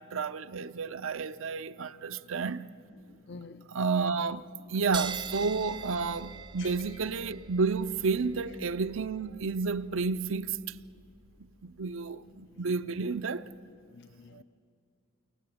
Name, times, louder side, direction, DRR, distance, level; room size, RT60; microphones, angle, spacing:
voice 1, 0.0-2.6 3.7-10.6 11.8-13.5 14.3-14.4, right 4 dB, 65° right, 0.6 m, -31 dB
voice 2, 3.3-3.6 6.6-7.0 14.0-14.4, left 4 dB, 50° left, 0.6 m, -47 dB
sound 1, 4.9-11.9, right 5 dB, 20° right, 0.6 m, -44 dB
29.0 x 24.5 x 7.8 m
head